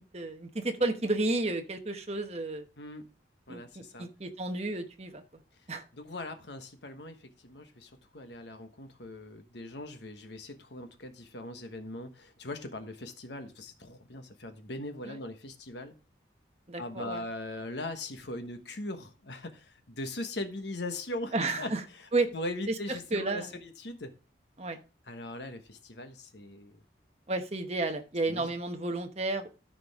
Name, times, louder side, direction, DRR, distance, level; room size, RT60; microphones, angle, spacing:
voice 1, 0.1-2.6 3.5-5.2 5.7-5.8 15.0-15.2 16.7-17.2 21.3-21.8 22.1-22.3 22.7-22.8 23.1-23.5 24.6-24.8 27.3-29.6, right 2 dB, 35° right, 6 dB, 1.0 m, -32 dB
voice 2, 3.5-4.1 5.9-15.9 16.8-21.7 22.3-24.1 25.1-26.8 28.3-28.5, left 2 dB, 70° left, 7 dB, 1.3 m, -40 dB
13.0 x 5.1 x 3.6 m, 0.33 s
head